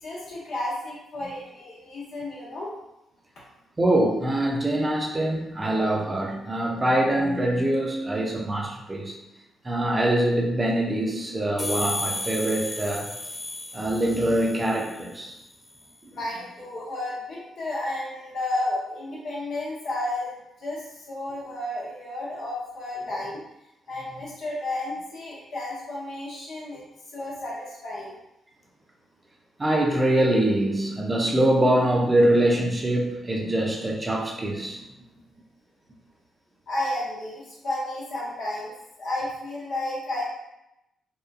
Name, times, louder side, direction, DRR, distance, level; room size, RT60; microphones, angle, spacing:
voice 1, 0.0-2.7 16.1-20.3 20.6-23.4 23.9-26.8 27.1-28.1 36.7-38.7 39.0-40.2, left 1 dB, 65° left, -6 dB, 0.8 m, -32 dB
voice 2, 3.8-9.1 9.6-13.1 13.7-15.4 16.0-16.1 23.1-23.2 29.6-34.8, right 1 dB, 30° right, -1 dB, 0.7 m, -24 dB
sound 1, 11.6-15.2, left 2 dB, 35° left, 0.4 m, -33 dB
2.9 x 2.2 x 2.2 m, 0.90 s
hypercardioid pair, 40°, 0 cm